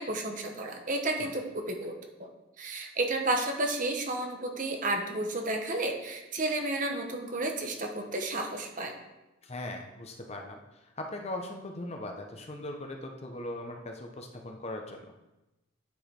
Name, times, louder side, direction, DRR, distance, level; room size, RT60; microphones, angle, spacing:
voice 1, 0.0-1.9 2.2-2.3 2.6-8.9, right 2 dB, 40° right, 4 dB, 0.9 m, -32 dB
voice 2, 9.4-10.6 11.0-15.0, left 1 dB, 30° left, 3 dB, 0.8 m, -39 dB
9.3 x 4.9 x 4.4 m, 0.98 s
head